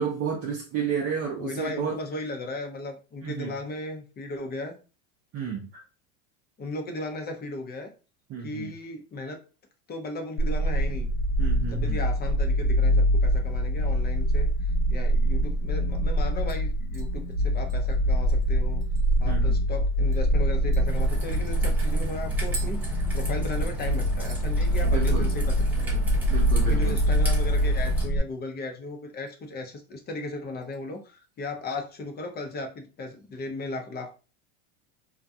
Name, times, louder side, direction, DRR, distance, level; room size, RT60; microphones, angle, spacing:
voice 1, 0.0-2.0 3.2-3.5 5.3-5.8 8.3-8.7 11.4-12.0 19.2-19.5 24.8-25.3 26.3-27.0, right 7 dB, 40° right, -2 dB, 0.6 m, -31 dB
voice 2, 1.4-4.7 6.6-7.9 8.4-9.4 9.9-11.1 11.7-14.5 14.9-18.8 19.2-26.3 26.6-34.1, left 2 dB, 25° left, 4 dB, 0.6 m, -36 dB
sound 1, 10.4-28.2, equal, 85° left, 1.0 m, -24 dB
sound 2, 16.5-19.3 19.7-19.8 20.1-20.3 20.7-23.7 24.0-24.5 24.8-25.2 25.5-25.6 27.7-28.3 28.6-29.4 29.8-30.1 30.6-31.5 31.9-32.0, right 3 dB, 65° right, 0.9 m, -47 dB
Raindrop / Trickle dribble, 20.9-28.1, right 1 dB, 5° right, 0.8 m, -38 dB
2.4 x 2.2 x 2.6 m, 0.33 s
supercardioid pair, 110°, 39 cm